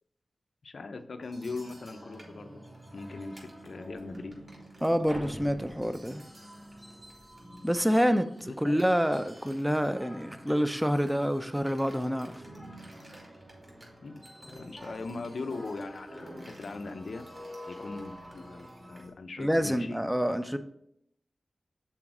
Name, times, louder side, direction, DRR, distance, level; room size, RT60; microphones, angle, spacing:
voice 1, 0.6-2.6 2.9-4.3 8.5-8.8 14.0-17.2 17.7-20.0, left 3 dB, 80° left, 0.6 m, -40 dB
sound 1, 1.2-19.1, equal, 30° right, 2.7 m, -48 dB
voice 2, 4.8-6.2 7.6-12.4 19.4-20.6, equal, 5° right, 0.6 m, -27 dB
6.2 x 4.0 x 4.7 m
cardioid pair, 55°, 0 cm